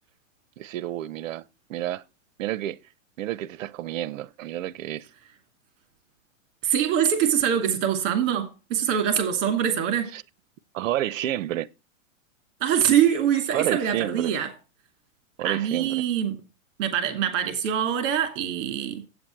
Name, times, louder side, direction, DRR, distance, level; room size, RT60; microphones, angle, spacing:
voice 1, 0.6-2.0 2.4-2.8 3.2-5.1 10.1-10.2 10.7-11.7 13.5-14.3 15.4-16.0, right 13 dB, 75° right, 0.7 m, -30 dB
voice 2, 6.6-10.1 12.6-14.5 15.4-16.4 16.8-19.0, right 9 dB, 45° right, 2.5 m, -24 dB
8.2 x 7.8 x 4.5 m
supercardioid pair, 155°, 39 cm